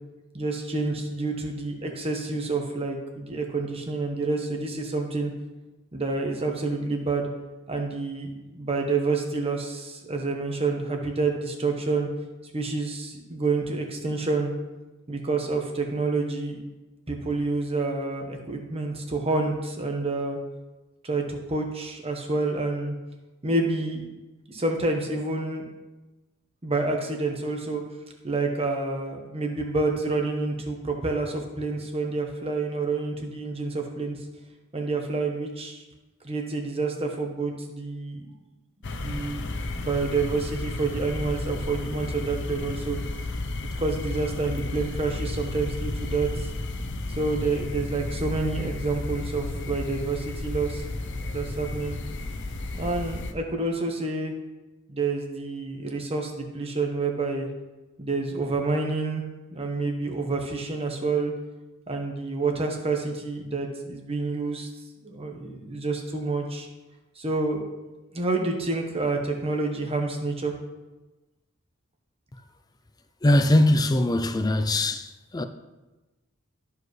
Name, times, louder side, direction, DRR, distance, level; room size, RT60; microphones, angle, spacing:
voice 1, 0.3-5.3 5.9-7.3 7.7-12.1 12.5-14.5 15.1-16.6 17.1-20.4 21.0-22.9 23.4-24.1 24.5-25.7 26.6-27.8 28.2-34.2 34.7-35.8 36.2-38.2 38.9-43.0 43.8-46.5 47.1-52.0 52.7-54.3 54.9-57.5 58.0-59.2 59.5-61.3 61.9-64.7 65.0-66.7 67.2-67.7 68.1-70.5, right 3 dB, 30° right, 1.1 m, -28 dB
sound 1, 38.8-53.3, left 2 dB, 60° left, 0.7 m, -33 dB
voice 2, 73.2-75.4, left 1 dB, 20° left, 0.4 m, -21 dB
13.0 x 4.8 x 3.2 m
head